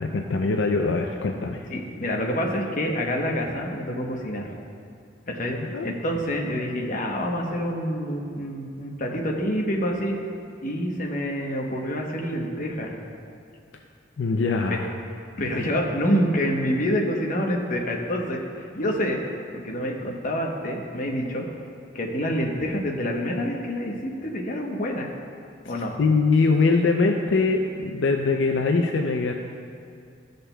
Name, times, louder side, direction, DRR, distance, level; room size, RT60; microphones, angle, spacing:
voice 1, 0.0-1.7 5.6-5.9 14.2-14.9 26.0-29.3, left 3 dB, 75° left, 3 dB, 0.4 m, -22 dB
voice 2, 1.7-4.5 5.3-10.1 10.6-12.9 15.4-19.2 19.5-21.5 21.9-25.1 25.7-25.9, equal, 45° left, 0 dB, 0.9 m, -27 dB
14.0 x 6.5 x 2.2 m, 2.4 s
head